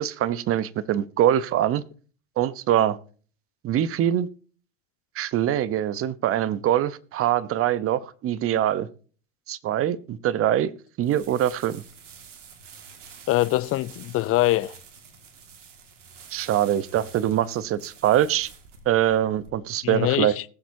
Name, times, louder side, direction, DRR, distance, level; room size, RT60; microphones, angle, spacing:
voice 1, 0.0-1.8 2.4-3.0 3.6-4.3 5.1-8.9 9.5-10.7 11.0-11.8 16.3-18.5 18.9-20.3, right 11 dB, 40° right, 0.9 m, -23 dB
sound 1, 11.0-19.5, right 6 dB, 85° right, 2.1 m, -48 dB
voice 2, 13.3-14.7 19.8-20.4, left 16 dB, 40° left, 0.6 m, -23 dB
20.5 x 7.4 x 2.7 m
hypercardioid pair, 85°, 36 cm